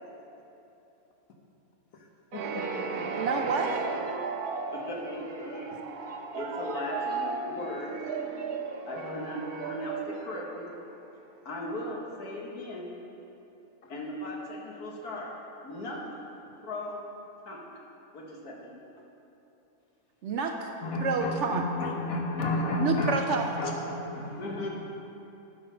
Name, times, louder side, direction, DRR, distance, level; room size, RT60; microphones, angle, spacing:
voice 1, 2.3-2.6 20.8-24.7, left 2 dB, 70° left, 2 dB, 1.4 m, -31 dB
sound 1, 2.3-11.1, right 4 dB, 90° right, 1.2 m, -35 dB
voice 2, 3.2-3.8 20.2-20.7 21.0-21.6 22.8-23.6, right 4 dB, 65° right, 4 dB, 0.8 m, -29 dB
voice 3, 4.7-5.8 6.3-8.0 8.8-10.7 11.5-12.9 13.9-15.3 15.6-16.2 16.6-17.0 17.5-17.6 18.1-18.8 24.4-24.7, left 1 dB, 90° left, -2 dB, 1.9 m, -37 dB
11.5 x 5.4 x 5.6 m, 2.9 s
omnidirectional pair, 1.6 m